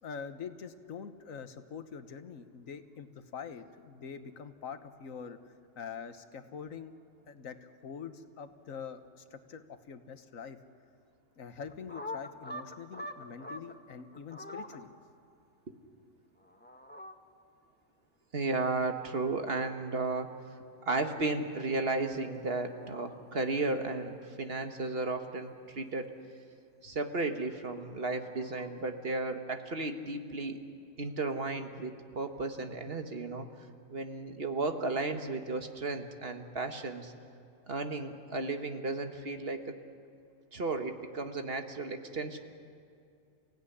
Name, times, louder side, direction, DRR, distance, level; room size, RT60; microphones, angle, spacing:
voice 1, 0.0-6.9 7.3-10.6 11.4-14.9, left 6 dB, 90° left, 10 dB, 1.6 m, -44 dB
sound 1, 11.7-13.7 14.1-14.8 16.4-17.2 18.8-19.7 20.0-20.2 22.4-23.0 24.6-25.5 27.9-28.8, left 1 dB, 10° left, 1.1 m, -46 dB
voice 2, 18.3-20.3 20.8-26.1 26.8-30.6 31.0-33.5 33.9-37.1 37.7-39.7 40.5-42.4, right 3 dB, 50° right, 6 dB, 1.7 m, -34 dB
29.5 x 16.5 x 10.0 m, 2.5 s
omnidirectional pair, 1.3 m